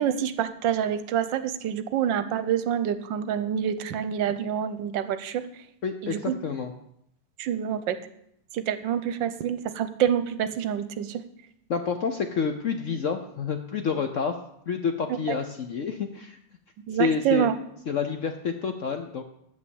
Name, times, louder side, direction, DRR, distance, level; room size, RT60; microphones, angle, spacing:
voice 1, 0.0-5.4 6.0-6.3 7.4-8.0 8.5-11.2 16.9-17.5, right 9 dB, 80° right, 11 dB, 1.4 m, -27 dB
voice 2, 5.8-6.7 11.7-14.4 14.7-16.4 17.0-17.5 17.9-19.2, left 6 dB, 60° left, 6 dB, 0.8 m, -28 dB
8.6 x 7.2 x 7.1 m, 0.75 s
omnidirectional pair, 2.0 m